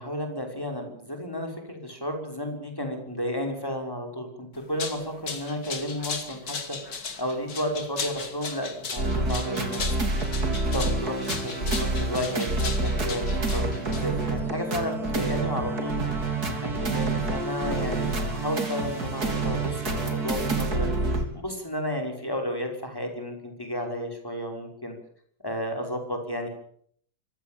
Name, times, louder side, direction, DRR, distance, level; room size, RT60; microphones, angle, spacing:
voice 1, 0.0-9.8 10.7-15.9 16.4-24.9 25.4-26.5, equal, 10° left, 3 dB, 5.9 m, -32 dB
sound 1, 4.6-14.4, left 4 dB, 55° left, 3.1 m, -36 dB
sound 2, 9.0-21.2, right 2 dB, 50° right, 3.9 m, -28 dB
25.0 x 16.0 x 9.2 m, 0.63 s
omnidirectional pair, 2.2 m